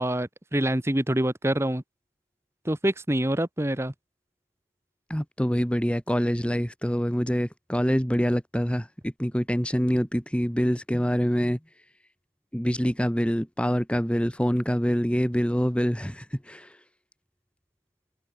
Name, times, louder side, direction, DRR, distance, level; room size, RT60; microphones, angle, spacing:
voice 1, 0.0-1.8 2.6-3.9, right 1 dB, 15° right, 1.0 m, -26 dB
voice 2, 5.1-11.6 12.5-16.8, equal, 5° left, 2.6 m, -25 dB
head